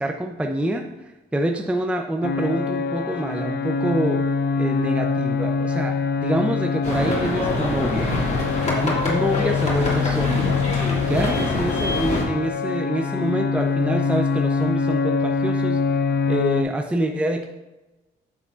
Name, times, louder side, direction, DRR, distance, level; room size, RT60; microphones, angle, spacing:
voice 1, 0.0-4.3 4.6-8.1 8.8-10.5 11.1-15.8 16.3-17.4, right 1 dB, 5° right, 3 dB, 0.5 m, -26 dB
sound 1, 2.2-16.6, left 5 dB, 55° left, 0.6 m, -24 dB
sound 2, 6.8-12.2, left 2 dB, 35° left, 2.0 m, -25 dB
9.4 x 5.8 x 2.4 m, 1.1 s
cardioid pair, 90°, 20 cm